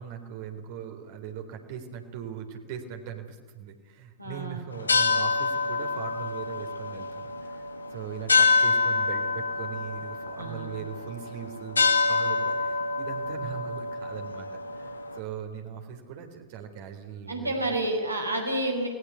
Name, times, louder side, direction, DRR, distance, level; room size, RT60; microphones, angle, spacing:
voice 1, 0.0-17.7, right 8 dB, 50° right, 4 dB, 3.6 m, -40 dB
voice 2, 4.2-4.6 10.3-10.7 17.3-18.9, right 1 dB, 85° right, 2 dB, 5.5 m, -29 dB
sound 1, 4.7-15.2, left 4 dB, 80° left, 1.9 m, -27 dB
29.5 x 20.0 x 8.3 m, 1.4 s
figure-of-eight pair, 90°, 0 cm